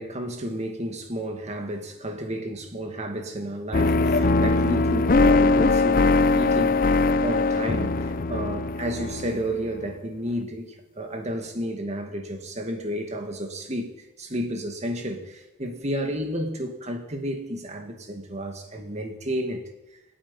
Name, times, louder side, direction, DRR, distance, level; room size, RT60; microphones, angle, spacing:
voice 1, 0.0-6.9 7.2-13.9 14.2-19.6, equal, 35° right, 2.1 m, -32 dB
sound 1, 3.7-9.8, left 3 dB, 45° left, 0.6 m, -21 dB
sound 2, 7.7-9.4, right 2 dB, 10° left, 2.4 m, -47 dB
26.0 x 8.7 x 5.5 m
head